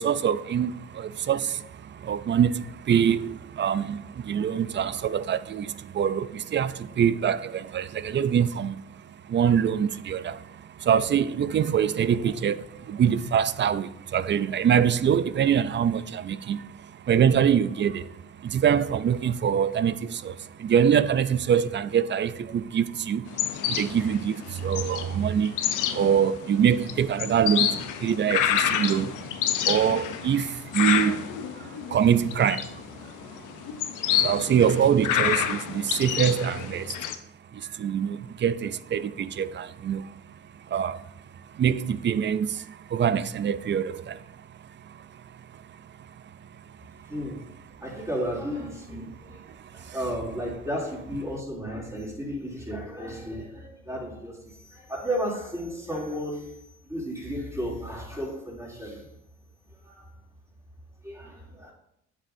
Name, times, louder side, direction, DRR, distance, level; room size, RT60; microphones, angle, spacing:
voice 1, 0.0-1.6 2.1-4.0 4.3-6.7 7.0-8.7 9.3-10.4 10.9-12.6 12.9-16.6 17.1-18.0 18.5-19.9 20.2-20.3 20.6-23.2 23.7-24.4 24.6-25.5 26.0-27.7 28.0-28.5 28.7-29.1 29.7-30.4 30.7-31.2 31.9-32.6 34.2-36.9 37.8-39.1 39.4-40.0 40.7-41.0 41.6-42.5 42.9-44.1, right 8 dB, 40° right, 0.4 m, -24 dB
sound 1, 23.3-37.2, left 10 dB, 85° left, 0.7 m, -29 dB
voice 2, 47.1-47.4 47.8-56.6 56.8-59.1 59.8-60.1 61.0-61.7, equal, 10° right, 2.9 m, -33 dB
8.8 x 7.5 x 2.7 m
cardioid pair, 90°, 30 cm